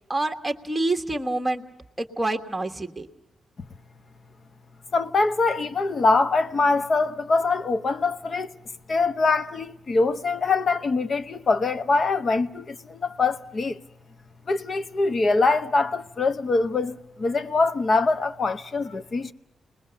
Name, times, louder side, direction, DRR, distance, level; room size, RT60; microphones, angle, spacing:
voice 1, 0.1-1.6 2.0-3.1, right 2 dB, 5° right, 1.3 m, -27 dB
voice 2, 4.9-8.5 8.9-13.8 14.5-19.3, left 3 dB, 35° left, 0.9 m, -23 dB
29.5 x 20.5 x 6.9 m
wide cardioid pair, 150°, 0 cm